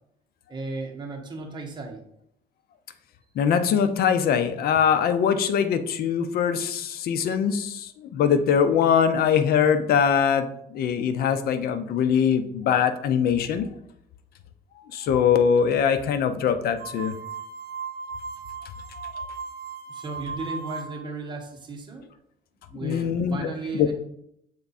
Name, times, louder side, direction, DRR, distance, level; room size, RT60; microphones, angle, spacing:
voice 1, 0.5-2.0 19.9-22.1 22.7-23.9, right 3 dB, 25° right, 0 dB, 1.3 m, -35 dB
voice 2, 3.4-13.7 14.9-17.1 22.8-23.9, left 7 dB, 65° left, 10 dB, 0.7 m, -22 dB
sound 1, 16.8-21.2, right 5 dB, 70° right, 0.7 m, -37 dB
6.9 x 3.5 x 4.1 m, 0.73 s
cardioid pair, 110°, 17 cm